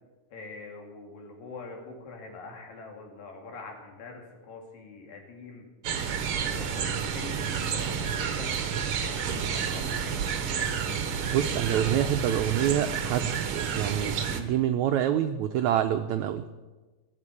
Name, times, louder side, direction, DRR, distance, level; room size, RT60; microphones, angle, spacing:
voice 1, 0.3-5.7 6.5-11.0, left 3 dB, 70° left, 1 dB, 3.9 m, -44 dB
blue jays challenge, 5.8-14.4, right 7 dB, 65° right, 1.5 m, -30 dB
voice 2, 11.3-16.5, right 10 dB, 90° right, 7 dB, 1.6 m, -27 dB
17.5 x 8.2 x 8.3 m, 1.2 s
omnidirectional pair, 4.1 m